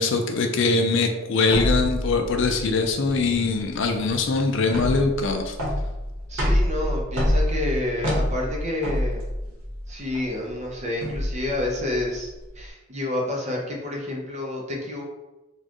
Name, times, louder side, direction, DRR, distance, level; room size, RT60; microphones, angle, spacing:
voice 1, 0.0-5.5, left 3 dB, 55° left, 4 dB, 0.4 m, -22 dB
sound 1, 1.5-12.7, equal, 80° right, 1.1 m, -27 dB
voice 2, 6.3-9.5 9.9-15.0, left 1 dB, 30° right, -1 dB, 0.7 m, -29 dB
4.2 x 2.4 x 2.9 m, 1.1 s
head